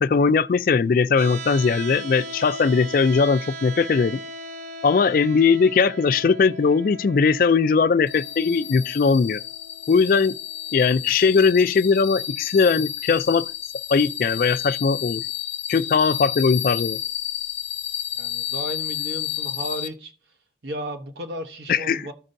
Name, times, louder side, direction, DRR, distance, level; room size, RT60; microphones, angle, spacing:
voice 1, 0.0-4.2 4.8-9.4 9.9-10.3 10.7-13.5 13.9-15.3 15.7-17.0 21.7-22.1, left 5 dB, 50° left, 0.3 m, -19 dB
sound 1, 1.2-13.2, right 1 dB, 40° right, 0.6 m, -40 dB
sound 2, 8.1-19.9, left 12 dB, 80° left, 0.9 m, -31 dB
voice 2, 18.1-20.1 20.6-22.1, equal, 75° right, 0.9 m, -34 dB
14.5 x 5.3 x 2.6 m
head